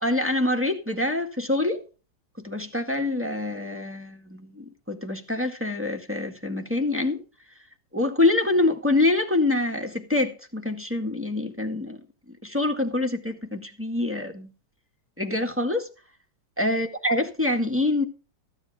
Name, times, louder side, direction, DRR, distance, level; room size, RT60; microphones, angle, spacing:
voice 1, 0.0-1.8 2.4-7.2 7.9-12.0 12.4-14.5 15.2-15.9 16.6-18.0, left 2 dB, 5° right, 1.6 m, -25 dB
14.5 x 10.5 x 3.6 m
omnidirectional pair, 2.2 m